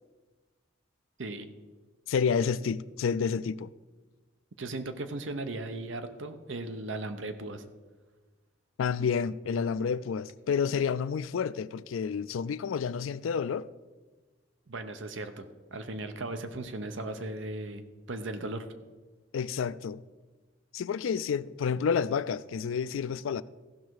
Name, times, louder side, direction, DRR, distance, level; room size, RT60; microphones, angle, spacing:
voice 1, 2.1-3.7 8.8-13.7 19.3-20.0 20.7-23.4, left 6 dB, 90° left, 0.4 m, -29 dB
voice 2, 4.6-7.6 14.7-17.8 18.1-18.7, right 2 dB, 70° right, 0.8 m, -37 dB
15.0 x 6.3 x 4.7 m
head